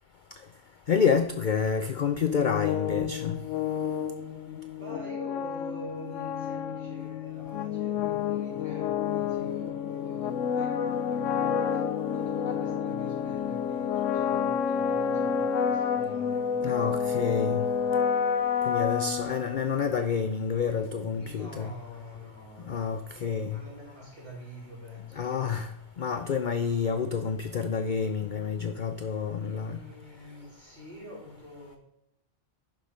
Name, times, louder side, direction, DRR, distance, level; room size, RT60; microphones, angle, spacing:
voice 1, 0.9-3.4 16.6-17.7 18.7-21.7 22.7-23.6 25.2-25.7 26.0-29.8, left 6 dB, 50° left, 8 dB, 0.6 m, -28 dB
sound 1, 2.2-19.9, left 7 dB, 70° left, 1.0 m, -29 dB
voice 2, 4.7-11.8 12.1-17.8 21.1-25.6 29.4-31.8, equal, 40° right, -6 dB, 4.6 m, -46 dB
11.5 x 5.1 x 5.2 m, 0.80 s
omnidirectional pair, 1.4 m